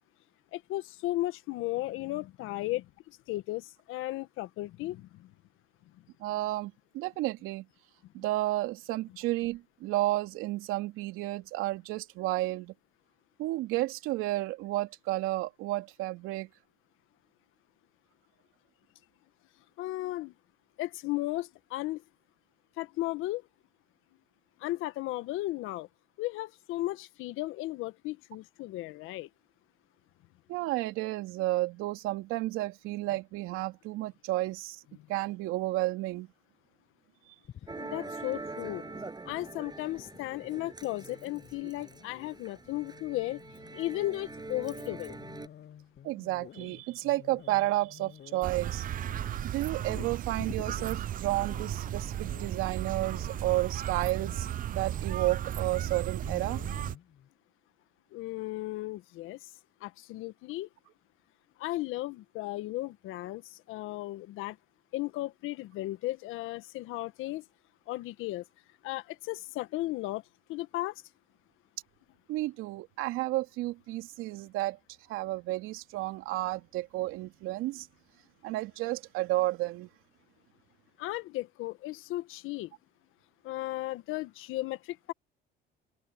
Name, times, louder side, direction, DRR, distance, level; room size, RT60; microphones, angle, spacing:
voice 1, 0.5-5.3 19.8-20.3 20.8-22.0 22.8-23.4 24.6-25.9 26.2-29.3 37.8-38.8 39.2-43.4 43.7-45.2 58.1-59.5 59.8-60.7 61.6-64.6 64.9-67.4 67.9-68.4 68.8-70.2 70.5-71.0 81.0-82.7 83.4-85.1, left 17 dB, 70° left, 1.4 m, -35 dB
voice 2, 6.2-7.7 8.1-12.7 13.4-16.5 30.5-34.8 35.1-36.3 46.0-48.9 49.4-56.6 72.3-74.8 75.1-77.9 78.4-79.9, right 17 dB, 75° right, 2.8 m, -32 dB
sound 1, 37.4-57.3, left 10 dB, 55° left, 7.3 m, -51 dB
Musical instrument, 37.7-45.5, right 3 dB, 20° right, 6.8 m, -44 dB
sound 2, 48.4-57.0, right 11 dB, 40° right, 0.5 m, -35 dB
open air
supercardioid pair, 80°, 21 cm